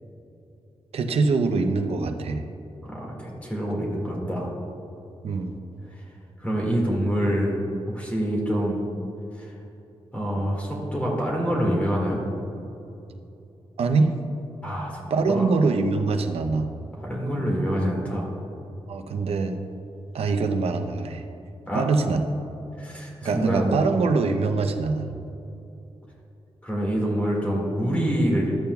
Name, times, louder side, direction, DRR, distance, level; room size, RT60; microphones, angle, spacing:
voice 1, 0.9-2.4 5.2-5.6 13.8-14.1 15.1-16.7 18.9-19.6 20.1-21.2 21.7-22.4 23.2-25.1, right 4 dB, 75° right, 6 dB, 0.7 m, -23 dB
voice 2, 2.8-4.5 5.9-6.0 6.4-7.6 7.9-8.8 9.4-9.5 10.1-12.2 14.6-15.0 15.3-15.4 17.0-18.3 21.7-21.8 22.8-23.8 26.6-28.5, equal, 15° left, -4 dB, 1.9 m, -26 dB
13.0 x 8.6 x 2.3 m, 2.8 s
wide cardioid pair, 115°, 10 cm